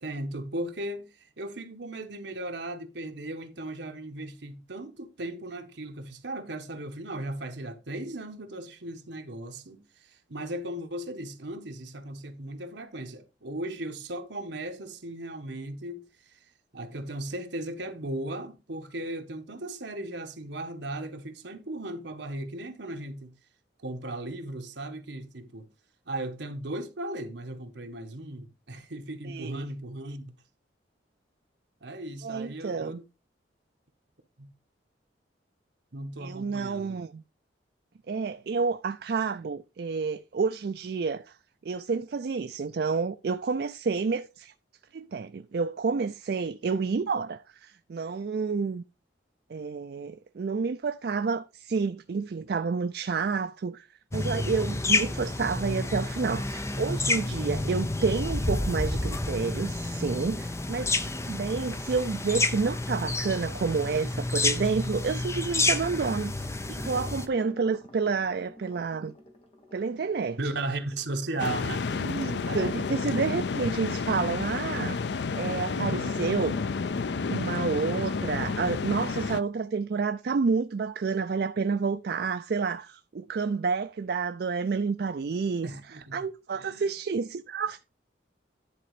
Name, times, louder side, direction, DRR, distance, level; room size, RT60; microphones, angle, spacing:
voice 1, 0.0-16.4 16.7-23.4 23.8-25.7 26.0-30.4 31.8-33.0 34.4-34.5 35.9-37.0 70.4-72.7 73.2-73.3 75.7-76.6 85.6-86.3 86.5-86.9, right 1 dB, 70° right, 1.4 m, -37 dB
voice 2, 29.2-29.6 32.2-33.0 36.2-37.2 38.1-41.4 41.6-44.5 44.9-48.8 49.5-53.9 54.1-60.9 61.3-69.1 69.7-70.4 72.0-75.0 75.4-76.6 77.3-87.8, right 5 dB, 55° right, 0.4 m, -29 dB
sound 1, 54.1-67.3, left 2 dB, 15° left, 0.6 m, -29 dB
sound 2, 60.5-62.2 65.6-72.4 72.7-72.9 73.2-73.3 73.8-73.9, left 1 dB, 30° left, 1.6 m, -52 dB
sound 3, 71.4-79.4, left 4 dB, 65° left, 0.4 m, -30 dB
10.5 x 4.2 x 4.8 m
head